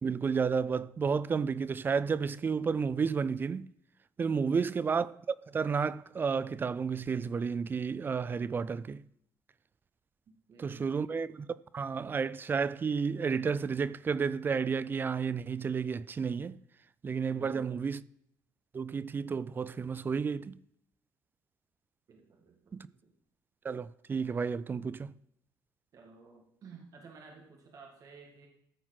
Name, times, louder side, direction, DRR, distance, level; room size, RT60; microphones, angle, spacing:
voice 1, 0.0-3.7 4.2-5.2 5.5-9.0 10.6-16.6 17.0-18.0 18.7-20.6 22.7-22.9 23.6-25.1, right 5 dB, 30° right, 0.3 m, -31 dB
voice 2, 4.2-4.5 10.3-10.9 17.2-17.8 22.1-23.1 25.9-28.5, right 4 dB, 50° right, 1.8 m, -54 dB
14.0 x 4.6 x 5.9 m
cardioid pair, 110°, 7 cm